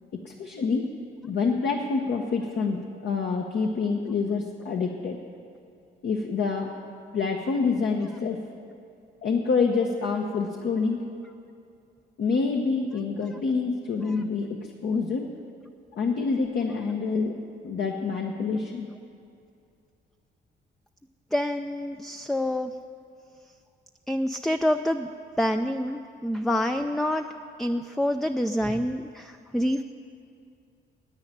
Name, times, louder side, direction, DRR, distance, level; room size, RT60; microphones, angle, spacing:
voice 1, 0.1-0.8 1.2-5.2 6.0-6.7 7.1-8.4 9.2-11.0 12.2-15.3 15.9-17.3 17.6-18.9, left 4 dB, 60° left, 1 dB, 1.1 m, -27 dB
voice 2, 21.3-22.7 24.1-25.1 25.4-29.8, left 1 dB, ahead, 7 dB, 0.4 m, -27 dB
10.5 x 9.0 x 9.8 m, 2.5 s
cardioid pair, 90°, 20 cm